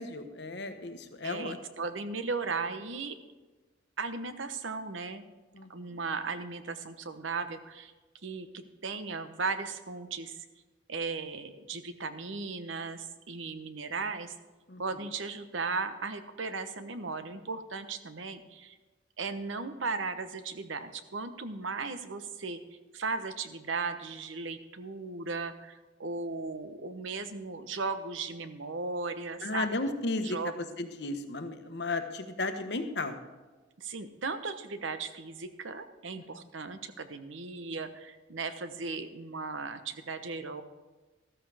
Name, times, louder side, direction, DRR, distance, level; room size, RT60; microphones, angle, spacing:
voice 1, 0.0-1.6 5.5-6.0 14.7-15.0 29.4-33.2 36.3-36.5, left 2 dB, 60° left, 8 dB, 1.0 m, -35 dB
voice 2, 1.2-3.1 4.0-5.2 5.7-7.9 8.2-10.4 10.9-14.3 14.8-18.8 19.2-22.6 22.9-29.9 30.2-30.5 33.8-40.6, right 4 dB, 80° right, 10 dB, 0.9 m, -36 dB
13.5 x 13.5 x 3.4 m, 1.2 s
head